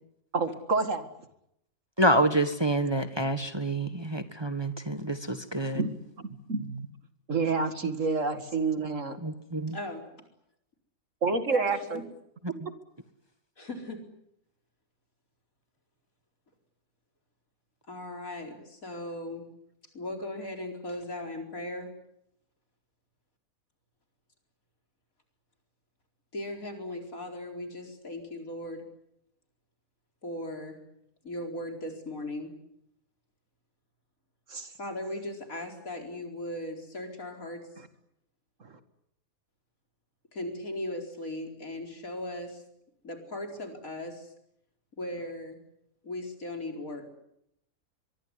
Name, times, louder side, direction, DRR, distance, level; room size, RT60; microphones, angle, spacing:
voice 1, 0.3-1.1 5.7-5.9 6.2-6.9 7.3-9.2 11.2-12.0 34.5-34.7 38.6-38.7, right 4 dB, 60° right, 9 dB, 2.4 m, -28 dB
voice 2, 2.0-5.8 9.2-9.8, right 1 dB, 20° right, 8 dB, 1.5 m, -27 dB
voice 3, 9.7-10.0 11.3-12.0 13.6-14.0 17.9-19.5 19.9-21.9 26.3-28.8 30.2-30.7 31.2-32.5 34.8-37.7 40.3-42.6 43.0-44.3 45.0-45.6 46.0-47.1, left 1 dB, 70° left, 3 dB, 4.9 m, -38 dB
23.5 x 23.5 x 9.8 m, 0.79 s
omnidirectional pair, 1.5 m